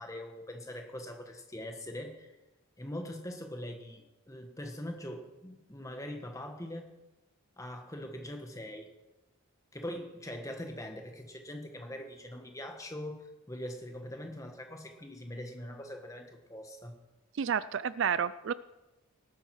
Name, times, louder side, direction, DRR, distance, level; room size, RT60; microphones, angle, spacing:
voice 1, 0.0-2.3 2.8-6.9 7.6-8.9 9.7-16.9, left 1 dB, 15° left, 4 dB, 1.4 m, -42 dB
voice 2, 17.4-18.5, right 7 dB, 55° right, 17 dB, 0.3 m, -30 dB
19.0 x 8.7 x 4.8 m, 1.0 s
head